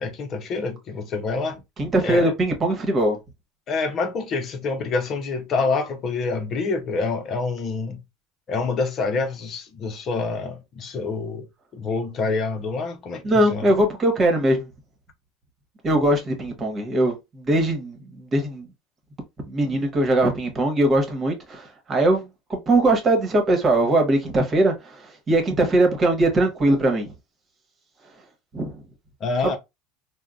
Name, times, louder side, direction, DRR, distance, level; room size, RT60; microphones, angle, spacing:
voice 1, 0.0-1.6 2.0-2.3 3.7-8.0 8.5-11.5 11.7-13.7 29.2-29.6, left 4 dB, 45° left, 0.7 m, -27 dB
voice 2, 1.8-3.2 13.2-14.7 15.8-18.7 19.4-27.1 28.5-28.8 29.4-29.6, right 1 dB, 30° right, 1.2 m, -21 dB
3.7 x 2.2 x 2.3 m
hypercardioid pair, 85°, 0 cm